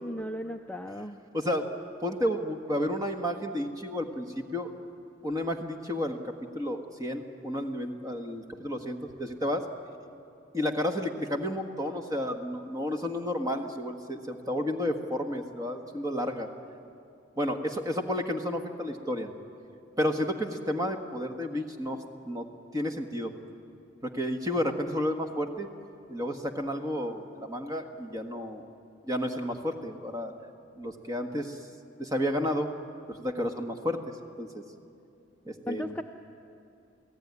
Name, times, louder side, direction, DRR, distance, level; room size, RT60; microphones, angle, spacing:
voice 1, 0.0-1.2 35.6-36.0, left 1 dB, 10° left, 4 dB, 0.5 m, -36 dB
voice 2, 1.3-1.7 2.0-4.7 5.2-9.6 10.5-16.5 17.4-19.3 20.0-22.5 22.7-23.3 24.0-25.7 26.1-28.6 29.0-30.3 30.8-31.6 32.0-32.7 33.1-34.0 34.4-34.6 35.5-36.0, left 1 dB, 15° right, 4 dB, 1.4 m, -31 dB
28.5 x 17.5 x 9.6 m, 2.6 s
head